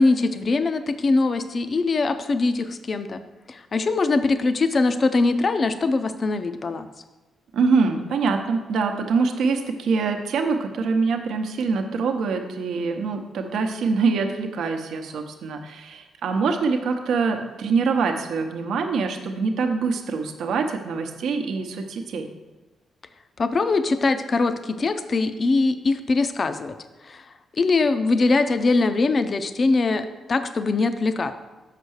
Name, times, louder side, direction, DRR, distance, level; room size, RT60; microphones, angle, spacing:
voice 1, 0.0-3.2 3.5-6.9 23.4-26.8 27.0-31.3, left 3 dB, 35° left, 10 dB, 0.4 m, -22 dB
voice 2, 7.5-22.3, right 4 dB, 80° right, 4 dB, 0.8 m, -24 dB
6.6 x 5.5 x 6.3 m, 1.1 s
cardioid pair, 120°, 0 cm